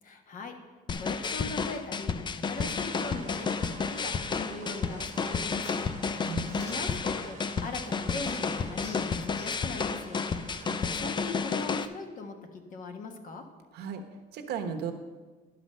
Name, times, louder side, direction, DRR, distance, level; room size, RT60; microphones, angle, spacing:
voice 1, 0.0-0.5 1.0-2.1 2.5-10.3 10.9-13.5, left 3 dB, 50° left, 5 dB, 1.3 m, -40 dB
sound 1, 0.9-11.8, left 5 dB, 25° left, 0.4 m, -31 dB
sound 2, 2.5-11.6, right 6 dB, 45° right, 1.1 m, -48 dB
sound 3, 5.1-11.3, left 1 dB, 80° left, 3.0 m, -51 dB
voice 2, 6.2-6.7 10.6-10.8 13.7-14.0 14.3-14.9, right 7 dB, 75° right, 6 dB, 1.1 m, -36 dB
11.5 x 5.9 x 5.5 m, 1.3 s
cardioid pair, 110°, 17 cm